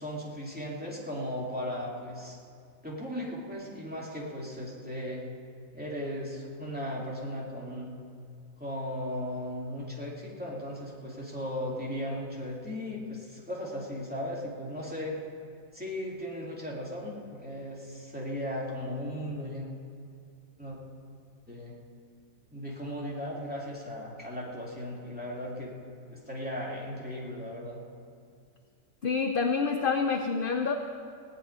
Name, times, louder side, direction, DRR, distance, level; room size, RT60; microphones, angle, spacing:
voice 1, 0.0-2.4 2.8-5.3 5.7-7.9 8.6-15.2 15.7-19.7 20.6-20.8 21.5-21.7 22.5-25.7 26.1-27.8, equal, 5° right, -5 dB, 2.7 m, -36 dB
voice 2, 29.0-30.7, left 5 dB, 50° left, 5 dB, 0.7 m, -27 dB
17.5 x 6.2 x 9.6 m, 2.4 s
omnidirectional pair, 1.5 m